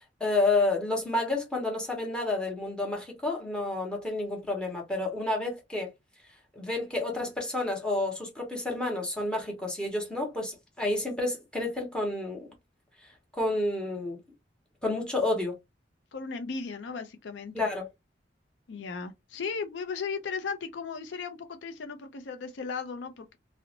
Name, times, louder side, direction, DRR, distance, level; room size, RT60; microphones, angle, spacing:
voice 1, 0.2-5.9 6.5-12.5 13.3-14.2 14.8-15.5 17.5-17.9, left 2 dB, 5° left, 0.9 m, -30 dB
voice 2, 16.1-17.5 18.7-23.4, left 5 dB, 90° left, 0.5 m, -36 dB
2.6 x 2.0 x 2.8 m
head